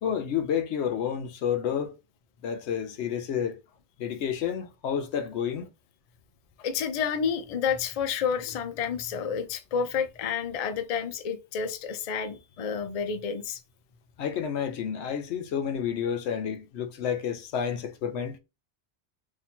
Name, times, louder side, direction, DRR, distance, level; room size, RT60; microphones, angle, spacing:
voice 1, 0.0-1.9 2.4-3.6 4.0-5.7 14.2-18.4, left 8 dB, 75° left, 0.8 m, -30 dB
voice 2, 6.6-13.6, left 7 dB, 50° left, 0.4 m, -30 dB
2.7 x 2.6 x 4.2 m
omnidirectional pair, 1.2 m